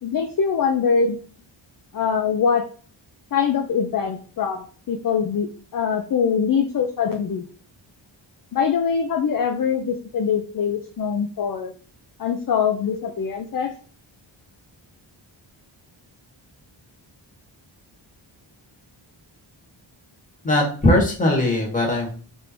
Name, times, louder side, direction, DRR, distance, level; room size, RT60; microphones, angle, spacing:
voice 1, 0.0-1.2 1.9-2.6 3.3-5.5 5.7-7.4 8.5-11.7 12.2-13.7, left 6 dB, 45° left, 5 dB, 0.5 m, -23 dB
voice 2, 20.4-22.1, left 1 dB, 15° left, -3 dB, 1.3 m, -19 dB
3.4 x 2.7 x 4.2 m, 0.41 s
wide cardioid pair, 135°, 48 cm